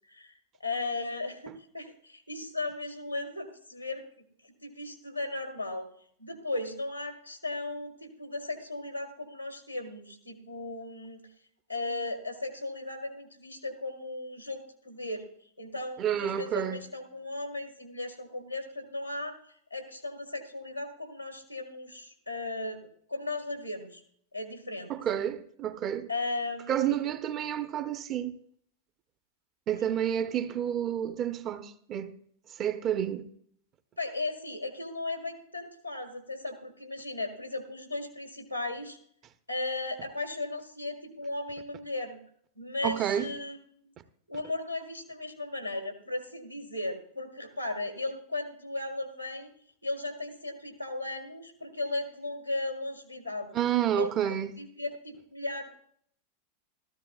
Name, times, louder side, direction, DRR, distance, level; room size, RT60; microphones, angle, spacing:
voice 1, 0.6-5.9 6.2-11.2 11.7-24.0 24.3-24.9 26.1-27.0 29.8-29.9 34.0-39.0 39.5-42.2 42.6-43.6 43.8-43.9 44.3-49.5 49.8-53.5 53.9-55.7, left 2 dB, 90° left, 1.7 m, -36 dB
voice 2, 16.0-16.8 24.9-26.1 26.7-28.3 29.7-32.1 32.6-33.3 42.8-43.3 53.5-54.6, right 10 dB, 30° right, 0.7 m, -29 dB
14.5 x 13.5 x 2.3 m
figure-of-eight pair, 90°, 0 cm